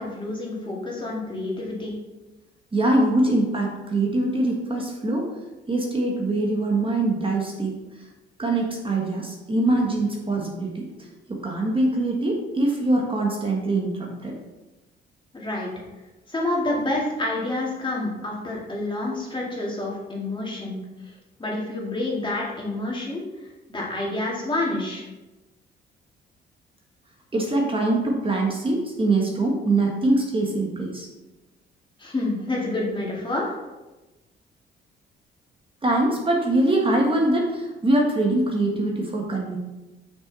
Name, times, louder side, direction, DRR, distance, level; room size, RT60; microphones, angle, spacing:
voice 1, 0.0-2.0 15.3-15.7 16.3-20.8 21.4-23.2 23.7-25.0 32.0-33.5, left 2 dB, 25° left, -3 dB, 2.2 m, -28 dB
voice 2, 2.7-5.3 5.7-7.7 8.4-10.9 11.3-14.3 27.3-31.1 35.8-39.6, right 2 dB, 25° right, -1 dB, 1.4 m, -23 dB
6.2 x 6.1 x 4.1 m, 1.1 s
cardioid pair, 90°, 20 cm